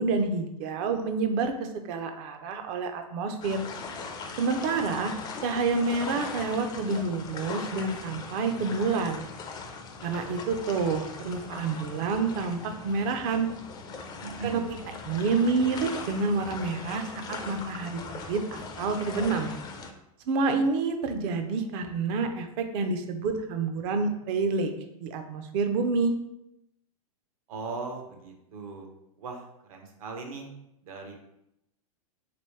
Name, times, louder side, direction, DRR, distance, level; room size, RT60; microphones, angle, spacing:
voice 1, 0.0-3.6 4.4-5.1 5.4-9.2 10.0-13.5 14.4-14.6 15.1-19.5 20.3-24.7 25.0-26.1, right 4 dB, 45° right, 6 dB, 0.5 m, -28 dB
sound 1, 3.4-19.9, left 4 dB, 20° left, 0.4 m, -40 dB
voice 2, 14.2-14.7 27.5-28.9 29.2-30.5 30.8-31.2, right 4 dB, 65° right, 2 dB, 0.9 m, -39 dB
3.0 x 3.0 x 3.2 m, 0.83 s
hypercardioid pair, 120°, 19 cm